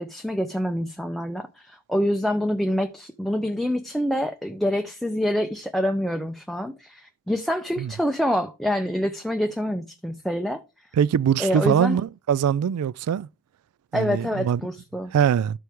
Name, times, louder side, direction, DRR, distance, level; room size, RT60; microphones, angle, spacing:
voice 1, 0.0-10.6 11.4-12.0 13.9-15.1, equal, ahead, 0.4 m, -26 dB
voice 2, 10.9-13.3 13.9-14.6 15.1-15.6, right 8 dB, 80° right, 0.3 m, -22 dB
12.5 x 4.6 x 3.4 m
head